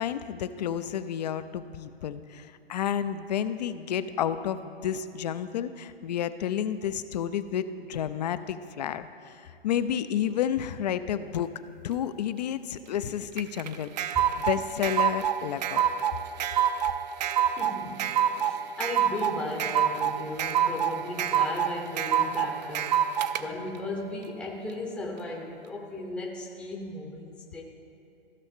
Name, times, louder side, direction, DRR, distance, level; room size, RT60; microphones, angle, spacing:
voice 1, 0.0-11.5 11.8-13.9 14.5-15.9, left 9 dB, 45° left, 12 dB, 0.4 m, -31 dB
sound 1, 13.4-23.4, right 9 dB, 45° right, 0.5 m, -26 dB
voice 2, 17.4-27.6, left 2 dB, 5° left, -1 dB, 0.7 m, -36 dB
15.5 x 6.2 x 3.6 m, 2.8 s
hypercardioid pair, 125°, 30 cm